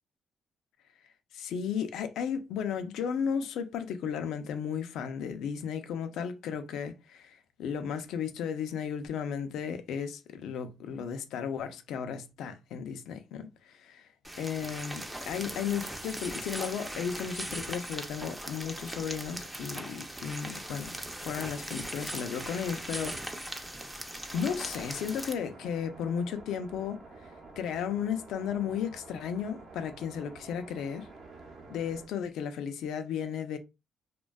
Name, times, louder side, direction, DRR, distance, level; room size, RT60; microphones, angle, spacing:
voice 1, 1.3-14.0 14.4-20.9 21.2-23.8 24.3-27.0 27.6-31.1 31.7-33.6, left 7 dB, 80° left, 0.4 m, -34 dB
sound 1, 14.2-25.3, right 1 dB, 10° right, 0.4 m, -39 dB
sound 2, 24.3-32.1, right 3 dB, 65° right, 0.7 m, -50 dB
2.5 x 2.2 x 2.2 m
cardioid pair, 90°, 0 cm